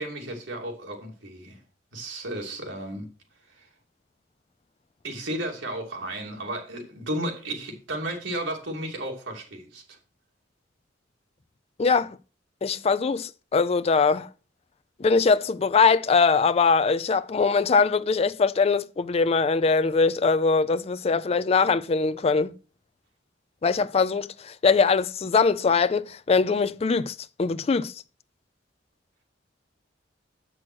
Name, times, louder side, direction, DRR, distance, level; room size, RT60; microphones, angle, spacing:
voice 1, 0.0-1.6 1.9-3.1 3.5-3.7 5.0-10.0, right 1 dB, 80° right, 2.8 m, -33 dB
voice 2, 11.8-12.2 12.6-14.3 15.0-22.5 23.6-27.9, left 4 dB, 35° left, 0.4 m, -22 dB
7.5 x 6.2 x 6.1 m
head